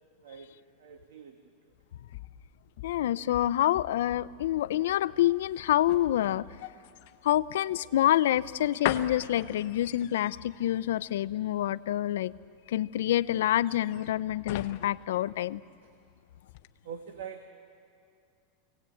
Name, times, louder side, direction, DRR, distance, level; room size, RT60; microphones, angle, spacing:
voice 1, 0.8-1.3 16.8-17.5, right 7 dB, 85° right, 6 dB, 1.4 m, -43 dB
sound 1, 1.7-16.1 16.4-16.7, left 14 dB, 50° left, 0.7 m, -41 dB
voice 2, 2.8-6.5 7.2-12.3 12.7-15.6, left 13 dB, 85° left, 17 dB, 0.5 m, -27 dB
25.5 x 17.5 x 8.5 m, 2.4 s
supercardioid pair, 175°, 0 cm